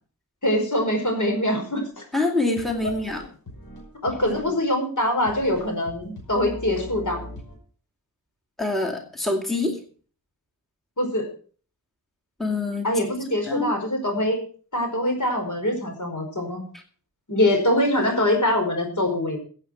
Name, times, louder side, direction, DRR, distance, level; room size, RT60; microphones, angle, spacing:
voice 1, 0.4-1.8 4.0-7.2 11.0-11.3 12.8-14.4 14.7-16.6 17.3-19.4, left 1 dB, 55° left, 3 dB, 5.2 m, -23 dB
sound 1, 2.0-2.1 2.6-4.5 5.0-5.1 5.3-7.6, left 1 dB, 75° left, 5.4 m, -40 dB
voice 2, 2.1-3.2 4.3-4.4 8.6-9.8 12.4-12.9 13.5-13.7, left 2 dB, ahead, 3 dB, 2.3 m, -25 dB
16.0 x 8.1 x 6.0 m, 0.42 s
wide cardioid pair, 70°, 36 cm